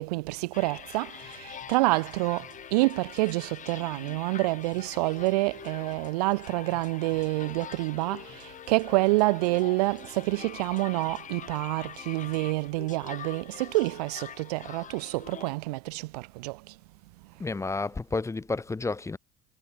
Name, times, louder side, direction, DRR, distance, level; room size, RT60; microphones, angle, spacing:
voice 1, 0.0-16.7, right 23 dB, 75° right, 1.0 m, -28 dB
sound 1, 0.5-15.5, left 9 dB, 40° left, 2.0 m, -44 dB
voice 2, 17.4-19.2, left 3 dB, 15° left, 1.2 m, -31 dB
hypercardioid pair, 80°, 20 cm